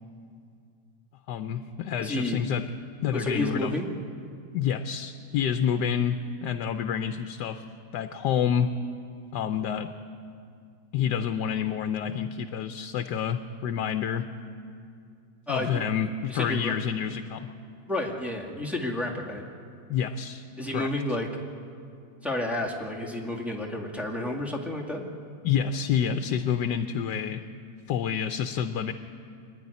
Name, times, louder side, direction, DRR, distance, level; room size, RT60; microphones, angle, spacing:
voice 1, 1.3-2.7 3.0-3.7 4.5-7.6 7.9-8.7 9.3-9.9 10.9-14.3 15.5-17.5 19.9-20.4 20.7-20.9 25.4-27.4 27.9-28.9, left 8 dB, 85° left, 8 dB, 1.3 m, -28 dB
voice 2, 2.0-2.4 3.1-3.9 15.5-15.8 16.3-16.7 17.9-19.4 20.6-21.3 22.2-25.0, left 1 dB, ahead, -2 dB, 2.0 m, -30 dB
25.0 x 10.5 x 9.7 m, 2.4 s
omnidirectional pair, 1.8 m